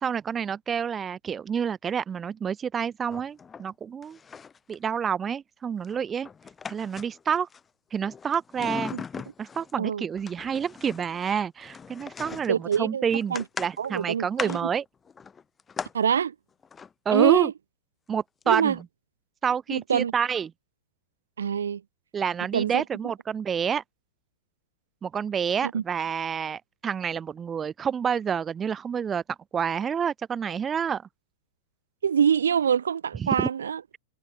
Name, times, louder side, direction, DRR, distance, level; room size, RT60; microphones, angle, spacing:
voice 1, 0.0-4.2 4.7-6.3 6.7-7.5 7.9-8.9 9.4-14.8 17.1-17.5 18.1-18.8 19.4-20.5 22.1-23.8 25.0-29.2 29.5-31.0 33.2-33.3, right 7 dB, 20° right, 0.3 m, -28 dB
sound 1, 3.1-3.7 4.0-4.8 5.8-7.6 8.0-9.7 10.1-15.9 16.6-16.9 18.4-18.5 18.7-18.8, left 6 dB, 20° left, 2.4 m, -39 dB
voice 2, 12.5-13.0 13.3-13.4 13.8-14.7 15.9-16.3 17.1-17.5 18.5-18.8 19.7-20.1 21.4-21.8 22.5-22.8 25.6-25.8 32.0-33.8, right 7 dB, 75° right, 0.5 m, -25 dB
hypercardioid pair, 105°, 0 cm